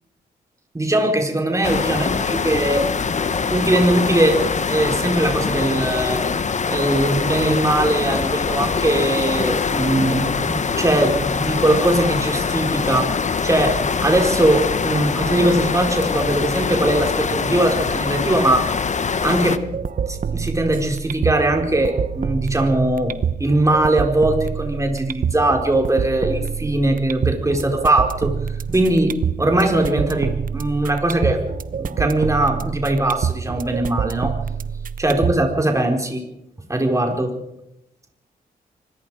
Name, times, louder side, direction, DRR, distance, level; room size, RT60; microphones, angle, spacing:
voice 1, 0.7-2.9 3.5-6.2 6.7-13.1 13.4-18.7 19.2-19.6 20.1-23.1 23.4-28.4 28.7-31.4 31.8-34.4 35.0-36.2 36.7-37.3, right 1 dB, 20° right, 3 dB, 4.5 m, -20 dB
sound 1, 1.6-19.6, left 5 dB, 45° left, 1.2 m, -23 dB
sound 2, 19.5-35.5, right 7 dB, 55° right, 1.0 m, -27 dB
26.0 x 20.5 x 4.9 m, 0.84 s
cardioid pair, 80°, 17 cm